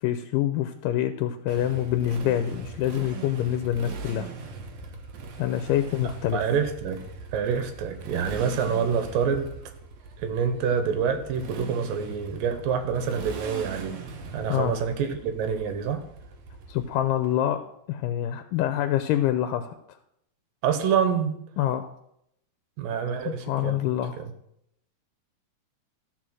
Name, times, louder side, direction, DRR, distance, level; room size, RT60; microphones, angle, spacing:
voice 1, 0.0-4.3 5.4-6.4 14.5-14.7 16.7-17.6 17.9-20.0 21.6-21.9 23.3-24.2, left 11 dB, 80° left, 9 dB, 2.2 m, -26 dB
Motorcycle, 1.5-17.3, right 4 dB, 60° right, 2.2 m, -40 dB
voice 2, 6.3-7.0 7.3-9.5 10.2-14.0 14.3-16.0 20.6-21.4 22.8-23.8 24.2-24.3, right 7 dB, 85° right, 8 dB, 2.7 m, -27 dB
13.5 x 4.6 x 6.2 m, 0.76 s
omnidirectional pair, 3.9 m